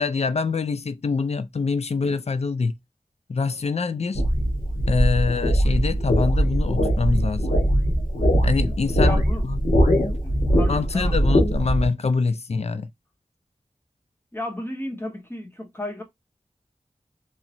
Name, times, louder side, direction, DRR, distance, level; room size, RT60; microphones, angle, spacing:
voice 1, 0.0-2.7 3.3-4.2 4.9-7.6 8.4-9.6 10.7-12.9, left 4 dB, 50° left, 0.4 m, -25 dB
sound 1, 4.1-11.9, equal, 85° left, 1.1 m, -21 dB
voice 2, 9.0-9.4 10.2-11.4 14.3-16.0, left 1 dB, 15° left, 1.2 m, -34 dB
3.1 x 2.8 x 2.6 m
wide cardioid pair, 50°, 14 cm